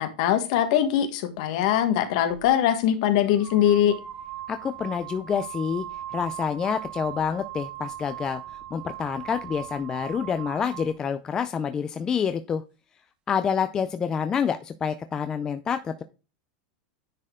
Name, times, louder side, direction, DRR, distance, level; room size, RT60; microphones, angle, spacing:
voice 1, 0.0-3.9, left 10 dB, 45° left, 9 dB, 1.4 m, -22 dB
sound 1, 2.3-2.5 3.3-11.0, right 12 dB, 20° right, 0.9 m, -39 dB
voice 2, 4.5-5.8 6.1-8.4 8.7-12.6 13.3-16.0, left 7 dB, 15° left, 9 dB, 0.4 m, -27 dB
9.9 x 4.4 x 3.6 m, 0.30 s
supercardioid pair, 175°, 5 cm